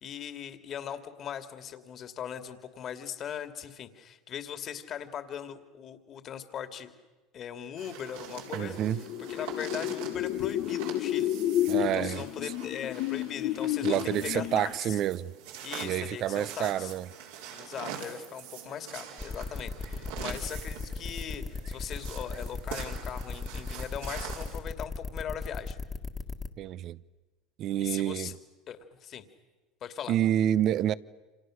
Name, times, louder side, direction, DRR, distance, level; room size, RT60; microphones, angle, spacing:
voice 1, 0.0-6.9 7.3-8.8 9.3-11.3 11.8-15.0 15.6-16.9 17.5-25.8 27.8-28.3 28.7-29.3 29.8-30.2, left 8 dB, 45° left, 2.4 m, -40 dB
sound 1, 7.8-24.6, right 8 dB, 85° right, 4.7 m, -44 dB
sound 2, 8.4-14.9, left 12 dB, 65° left, 0.9 m, -31 dB
voice 2, 8.5-9.0 11.7-12.2 13.8-15.3 15.8-17.1 26.6-27.0 27.6-28.4 30.1-30.9, right 11 dB, 50° right, 0.8 m, -28 dB
sound 3, 19.2-26.5, left 4 dB, 15° left, 1.7 m, -36 dB
29.0 x 27.0 x 6.5 m
supercardioid pair, 100°, 0 cm